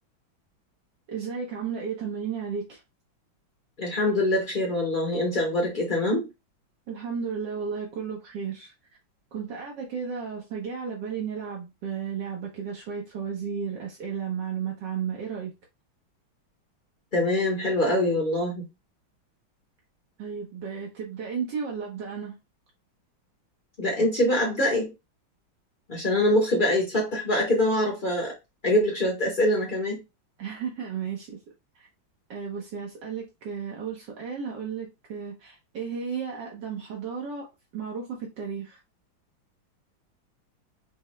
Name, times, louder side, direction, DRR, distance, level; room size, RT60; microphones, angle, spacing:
voice 1, 1.1-2.8 6.9-8.7 9.3-15.5 20.2-22.3 30.4-31.4 31.7-31.9 32.3-37.5 37.7-38.8, right 6 dB, 65° right, 1.4 m, -33 dB
voice 2, 3.8-6.3 17.1-18.6 23.8-24.9 25.9-28.3 28.6-30.0, left 1 dB, 75° left, 0.4 m, -24 dB
5.6 x 2.1 x 3.1 m
omnidirectional pair, 2.2 m